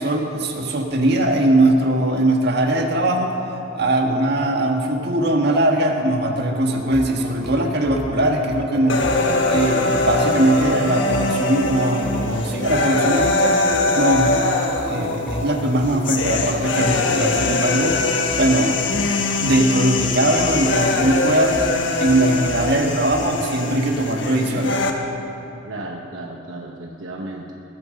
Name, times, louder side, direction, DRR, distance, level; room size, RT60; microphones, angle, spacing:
voice 1, 0.0-3.3 3.7-9.1 9.5-13.6 13.9-14.4 14.8-18.0 18.4-18.8 19.1-21.6 22.0-24.9, right 1 dB, 55° right, 3 dB, 1.6 m, -20 dB
sound 1, 6.9-23.6, equal, ahead, 0.7 m, -36 dB
sound 2, 8.9-24.9, left 2 dB, 65° left, 1.4 m, -22 dB
voice 2, 25.7-27.5, right 2 dB, 75° right, 1 dB, 1.0 m, -34 dB
21.0 x 9.1 x 6.5 m, 3.0 s
head